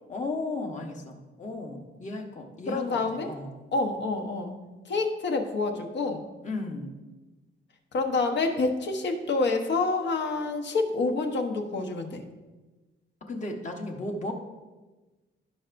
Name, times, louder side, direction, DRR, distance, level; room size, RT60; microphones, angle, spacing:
voice 1, 0.1-3.5 6.4-6.9 13.3-14.3, left 2 dB, 35° left, 2 dB, 1.2 m, -35 dB
voice 2, 2.7-3.3 3.7-4.6 4.8-6.3 7.9-12.2, left 3 dB, 60° left, 4 dB, 1.1 m, -27 dB
16.0 x 5.8 x 2.6 m, 1.2 s
wide cardioid pair, 160°, 21 cm